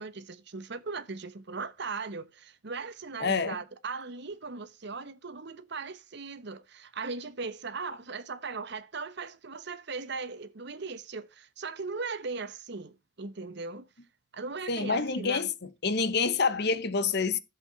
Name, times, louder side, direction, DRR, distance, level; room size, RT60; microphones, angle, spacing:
voice 1, 0.0-13.9 14.3-15.5, right 4 dB, 60° right, 1.0 m, -38 dB
voice 2, 3.2-3.6 14.7-15.5 15.8-17.4, left 4 dB, 55° left, 1.1 m, -27 dB
11.5 x 7.8 x 4.0 m
head